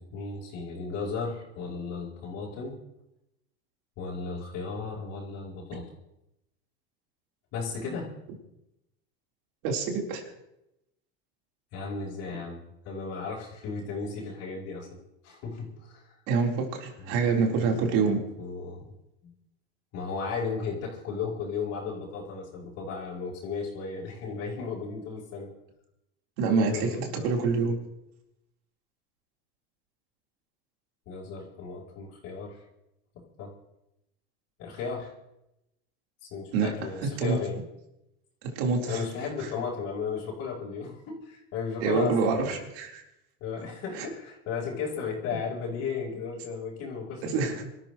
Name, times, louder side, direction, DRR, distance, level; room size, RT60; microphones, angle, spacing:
voice 1, 0.0-2.8 4.0-5.9 7.5-8.1 11.7-16.2 17.0-18.1 18.4-18.9 19.2-19.3 19.9-25.5 26.5-27.3 31.1-32.6 33.1-33.5 34.6-35.1 36.2-37.6 38.9-42.6 43.4-47.6, left 5 dB, 55° left, -7 dB, 4.6 m, -35 dB
voice 2, 9.6-10.2 16.3-18.2 26.4-27.8 36.5-36.7 37.2-37.4 38.4-39.0 39.4-39.5 41.8-43.0 43.9-44.1 47.2-47.6, right 4 dB, 70° right, 0 dB, 4.1 m, -26 dB
26.5 x 13.5 x 3.2 m, 0.88 s
supercardioid pair, 120°, 30 cm